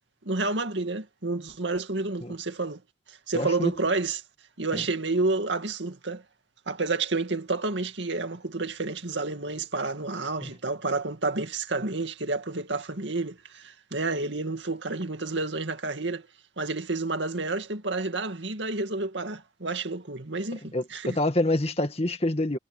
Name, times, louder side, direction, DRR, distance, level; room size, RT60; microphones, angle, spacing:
voice 1, 0.2-2.8 3.1-4.2 4.6-6.2 6.7-16.3 16.6-21.2, right 3 dB, 75° right, 2.2 m, -30 dB
voice 2, 3.3-3.7 4.7-4.8 10.4-10.5 20.7-22.6, left 1 dB, 35° left, 2.0 m, -27 dB
head